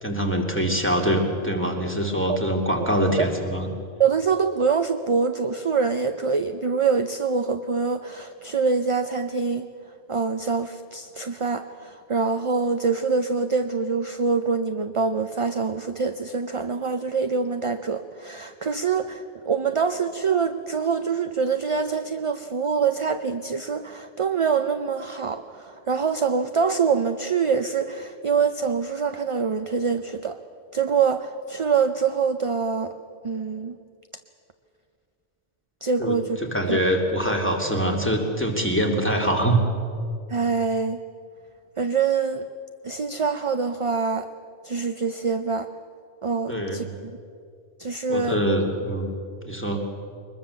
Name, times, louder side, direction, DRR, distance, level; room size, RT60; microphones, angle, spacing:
voice 1, 0.0-3.7 36.0-39.6 46.5-46.8 48.1-49.1 49.4-49.8, right 1 dB, 10° left, 1 dB, 2.4 m, -24 dB
voice 2, 4.0-9.7 10.1-30.4 30.7-32.9 33.2-33.8 35.8-36.4 36.7-36.8 40.3-41.0 41.8-42.5 42.8-44.3 44.6-45.7 46.2-47.2 47.8-48.4, right 5 dB, 35° right, 8 dB, 0.5 m, -25 dB
23.0 x 21.0 x 7.0 m, 2.4 s
omnidirectional pair, 1.2 m